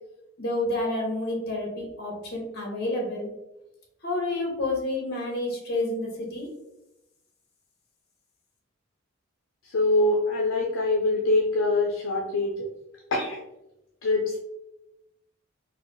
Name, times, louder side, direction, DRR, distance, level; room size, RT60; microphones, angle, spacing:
voice 1, 0.4-3.3 4.0-6.5, left 2 dB, 50° left, 0 dB, 1.0 m, -29 dB
voice 2, 9.7-12.5 13.1-13.4 14.0-14.4, left 2 dB, 65° left, -1 dB, 0.5 m, -24 dB
3.9 x 2.1 x 3.1 m, 0.91 s
head